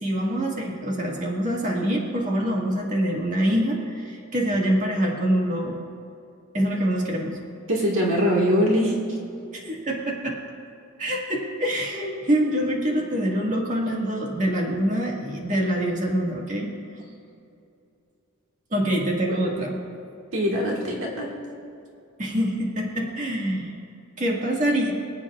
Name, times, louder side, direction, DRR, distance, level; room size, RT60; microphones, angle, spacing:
voice 1, 0.0-5.8 6.5-7.4 9.5-10.4 11.0-16.7 18.7-19.8 22.2-23.7 24.2-24.9, equal, 35° right, -2 dB, 1.9 m, -25 dB
voice 2, 7.7-9.2 19.3-19.5 20.3-21.3, equal, 65° right, -2 dB, 1.7 m, -23 dB
25.5 x 8.6 x 2.5 m, 2.6 s
head